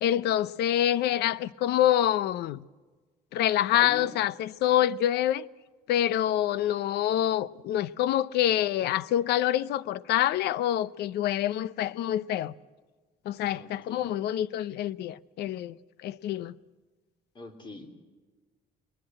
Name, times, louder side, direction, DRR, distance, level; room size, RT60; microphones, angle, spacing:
voice 1, 0.0-2.6 3.3-5.5 5.9-12.5 13.3-15.8 16.0-16.5, left 12 dB, 75° left, 0.7 m, -26 dB
voice 2, 3.7-4.1 13.5-14.0 17.3-17.9, left 2 dB, 30° left, 3.7 m, -43 dB
21.0 x 21.0 x 7.7 m
cardioid pair, 110°, 17 cm